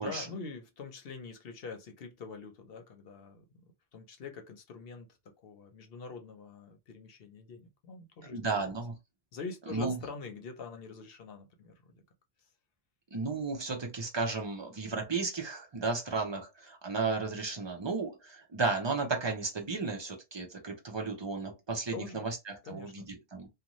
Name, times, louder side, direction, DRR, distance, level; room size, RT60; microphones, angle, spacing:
voice 1, 0.0-3.6 3.9-5.1 5.4-8.6 9.3-12.0 21.9-22.3 22.6-23.1, left 4 dB, 65° left, 0.9 m, -44 dB
voice 2, 8.2-8.9 9.7-10.0 13.1-23.5, right 4 dB, 30° right, 0.7 m, -34 dB
2.6 x 2.3 x 3.0 m
omnidirectional pair, 1.1 m